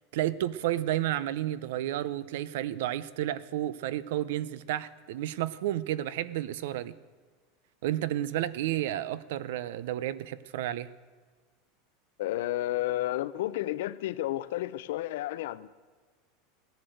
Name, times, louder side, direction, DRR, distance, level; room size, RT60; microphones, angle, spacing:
voice 1, 0.1-7.0 7.8-10.9, right 13 dB, 70° right, 17 dB, 0.6 m, -31 dB
voice 2, 12.2-15.7, left 15 dB, 70° left, 15 dB, 0.6 m, -31 dB
17.0 x 10.5 x 7.8 m, 1.5 s
supercardioid pair, 170°, 0 cm